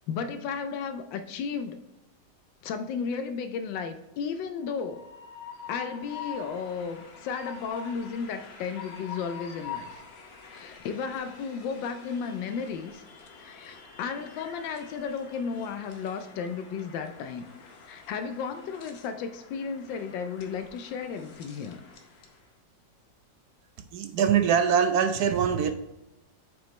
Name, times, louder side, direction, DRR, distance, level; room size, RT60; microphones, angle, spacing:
voice 1, 0.1-1.8 2.6-5.0 5.7-10.0 10.5-13.0 13.4-17.5 17.8-21.8, left 6 dB, 85° left, 8 dB, 1.3 m, -34 dB
Train, 4.6-22.4, left 6 dB, 50° left, 0.8 m, -46 dB
voice 2, 23.9-25.7, right 7 dB, 70° right, 8 dB, 1.0 m, -23 dB
8.1 x 4.7 x 3.1 m, 0.95 s
omnidirectional pair, 2.0 m